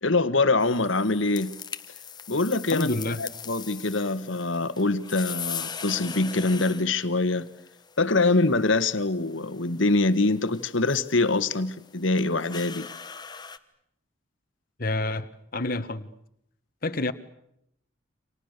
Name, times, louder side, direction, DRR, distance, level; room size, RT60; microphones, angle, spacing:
voice 1, 0.0-1.5 2.3-2.9 3.2-7.5 8.0-12.9, left 3 dB, 70° left, 1.6 m, -24 dB
sound 1, 0.6-13.6, left 7 dB, 20° left, 1.2 m, -41 dB
voice 2, 2.7-3.2 14.8-16.1 16.8-17.1, left 2 dB, 45° left, 1.4 m, -28 dB
30.0 x 26.5 x 6.8 m
head